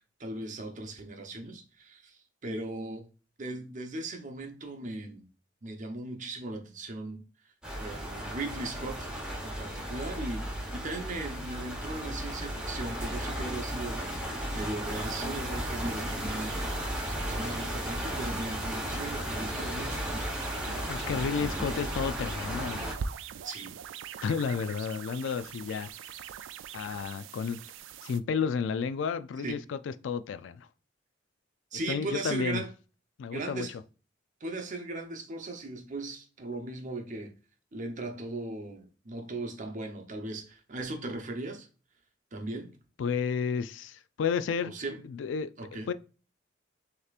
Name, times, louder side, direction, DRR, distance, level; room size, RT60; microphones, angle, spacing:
voice 1, 0.2-3.1 3.4-5.3 5.6-7.2 7.7-9.1 9.4-14.0 14.3-16.6 17.3-21.8 23.4-23.7 29.4-29.6 31.7-32.7 33.3-33.7 34.4-37.3 37.7-41.7 42.3-42.7 44.6-45.0 45.6-45.9, right 2 dB, 40° right, 0.8 m, -38 dB
sound 1, 7.6-22.9, equal, 5° right, 1.1 m, -35 dB
sound 2, 14.9-28.2, right 7 dB, 75° right, 0.3 m, -43 dB
voice 2, 20.7-23.0 24.2-26.2 26.7-27.6 28.0-30.7 31.9-32.6 33.2-33.8 43.0-44.7 45.0-45.5 45.9-46.0, left 6 dB, 70° left, 0.3 m, -32 dB
6.4 x 2.9 x 2.4 m
head